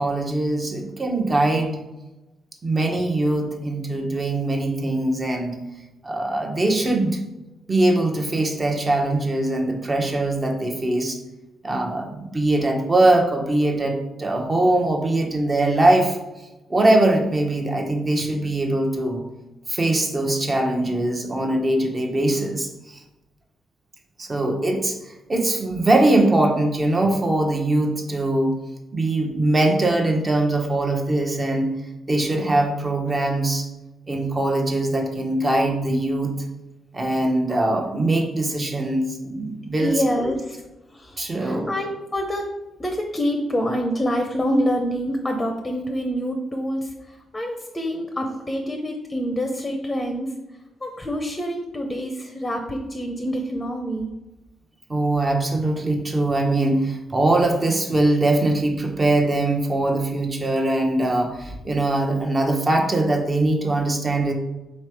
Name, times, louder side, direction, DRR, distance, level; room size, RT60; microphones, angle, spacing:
voice 1, 0.0-1.8 2.6-5.6 6.0-7.2 7.7-11.2 11.6-16.2 16.7-19.2 19.7-23.0 24.2-28.5 28.9-31.7 32.1-33.7 34.1-36.3 36.9-40.3 41.2-41.7 54.9-64.3, right 2 dB, 30° right, 2 dB, 1.0 m, -22 dB
voice 2, 39.8-40.6 40.9-42.5 42.8-50.3 50.8-54.1, equal, 20° left, 3 dB, 0.7 m, -26 dB
3.5 x 3.2 x 4.7 m, 1.0 s
supercardioid pair, 60°, 0 cm